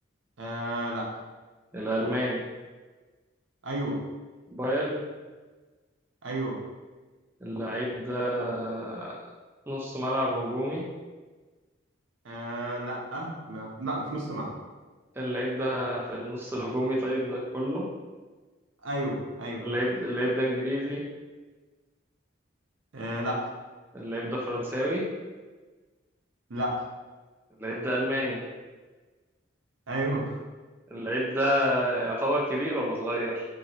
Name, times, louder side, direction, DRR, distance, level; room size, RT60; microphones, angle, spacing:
voice 1, 0.4-1.1 3.6-4.0 6.2-6.6 12.2-14.5 18.8-19.7 22.9-23.5 26.5-26.8 29.9-30.3, right 1 dB, 75° right, -2 dB, 0.7 m, -32 dB
voice 2, 1.7-2.4 4.5-5.0 7.4-9.1 9.7-10.8 15.2-17.9 19.6-21.0 23.9-25.0 27.6-28.4 30.9-33.5, equal, 10° right, -4 dB, 0.3 m, -29 dB
2.9 x 2.6 x 2.7 m, 1.3 s
head